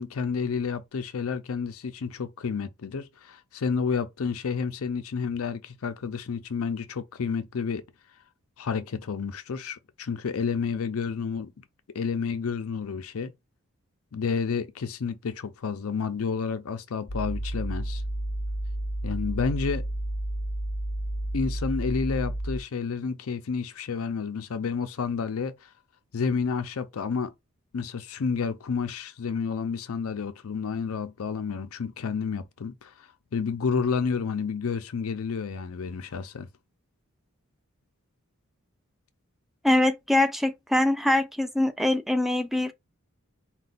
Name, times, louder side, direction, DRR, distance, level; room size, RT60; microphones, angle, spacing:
voice 1, 0.0-7.8 8.6-11.5 11.9-13.3 14.1-18.0 19.0-19.8 21.3-25.7 26.1-27.3 27.7-32.9 33.3-36.5, left 5 dB, 80° left, 0.5 m, -30 dB
sound 1, 17.1-22.6, right 1 dB, 30° left, 0.7 m, -31 dB
voice 2, 39.6-42.7, left 1 dB, ahead, 0.4 m, -23 dB
4.2 x 2.3 x 3.9 m
head